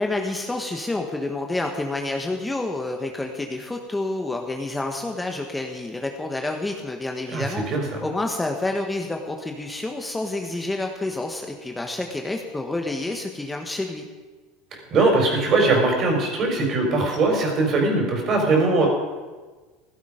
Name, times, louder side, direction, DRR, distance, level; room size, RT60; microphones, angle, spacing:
voice 1, 0.0-7.6 8.0-14.1, left 2 dB, 10° left, 3 dB, 1.3 m, -28 dB
voice 2, 7.3-7.8 14.9-18.9, right 3 dB, 45° right, 2 dB, 5.0 m, -20 dB
16.0 x 12.0 x 5.1 m, 1.3 s
supercardioid pair, 110°, 0 cm